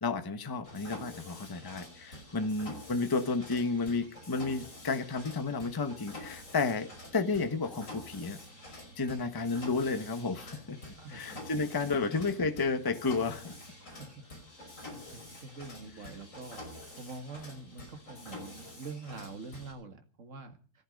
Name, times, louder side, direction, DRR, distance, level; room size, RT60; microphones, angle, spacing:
voice 1, 0.0-8.4 9.0-13.6, left 4 dB, 15° left, 8 dB, 0.8 m, -32 dB
Mechanisms, 0.6-19.7, left 1 dB, 35° left, 5.9 m, -48 dB
voice 2, 11.0-11.5 13.9-16.6 17.0-20.6, right 3 dB, 35° right, 7 dB, 2.0 m, -46 dB
17.0 x 14.5 x 5.3 m, 0.40 s
omnidirectional pair, 2.4 m